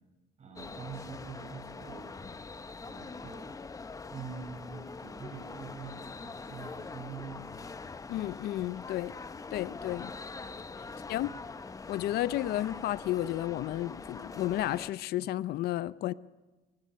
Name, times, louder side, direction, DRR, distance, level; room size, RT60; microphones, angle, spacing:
voice 1, 0.4-2.4 2.8-3.5 4.1-7.7 9.0-9.2 10.8-11.3 12.1-12.3, right 5 dB, 45° right, 7.5 m, -45 dB
sound 1, 0.6-14.9, left 4 dB, 20° left, 0.7 m, -44 dB
voice 2, 8.1-9.1 9.5-10.1 11.1-11.3 11.9-16.1, left 14 dB, 70° left, 0.6 m, -32 dB
22.5 x 18.5 x 6.6 m
cardioid pair, 110°, 17 cm